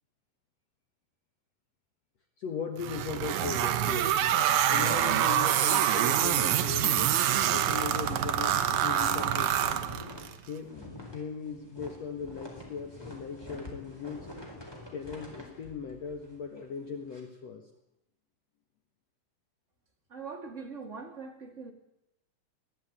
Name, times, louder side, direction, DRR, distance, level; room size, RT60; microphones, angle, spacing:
voice 1, 2.4-4.2 4.7-7.2 7.5-9.9 10.5-14.3 14.9-17.7, left 6 dB, 55° left, 5 dB, 2.4 m, -38 dB
sound 1, 2.8-10.3, right 10 dB, 70° right, 2.2 m, -26 dB
sound 2, 3.2-5.2 5.6-5.7 6.0-17.2, left 1 dB, 5° left, 4.1 m, -48 dB
voice 2, 20.1-21.7, right 4 dB, 25° right, 2 dB, 2.6 m, -42 dB
21.5 x 15.0 x 8.9 m, 0.84 s
omnidirectional pair, 3.9 m